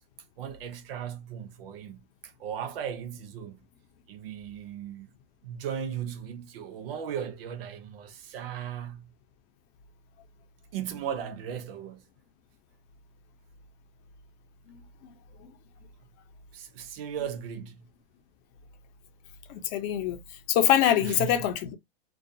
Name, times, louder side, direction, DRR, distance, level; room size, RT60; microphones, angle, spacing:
voice 1, 0.4-3.6 4.1-5.1 5.4-9.1 10.7-12.0 16.5-17.9 21.0-21.5, right 8 dB, 70° right, 0.7 m, -37 dB
voice 2, 19.5-20.2 20.5-21.8, left 11 dB, 45° left, 0.6 m, -24 dB
2.4 x 2.3 x 2.6 m
supercardioid pair, 140°, 30 cm